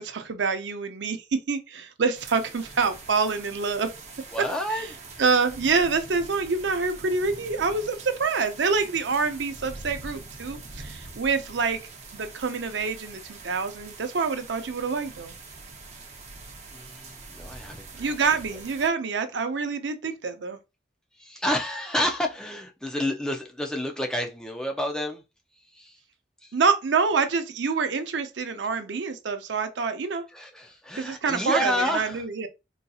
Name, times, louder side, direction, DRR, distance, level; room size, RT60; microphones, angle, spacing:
voice 1, 0.0-3.9 5.2-11.8 12.1-15.4 18.0-20.6 26.5-30.2 31.0-32.5, right 4 dB, 90° right, 0.5 m, -26 dB
sound 1, 2.1-18.9, right 3 dB, 40° right, 0.6 m, -44 dB
voice 2, 4.3-5.0 16.7-18.6 21.1-25.2 25.6-26.0 26.4-26.6 30.3-32.3, left 1 dB, 5° left, 0.4 m, -30 dB
3.8 x 2.7 x 2.3 m
head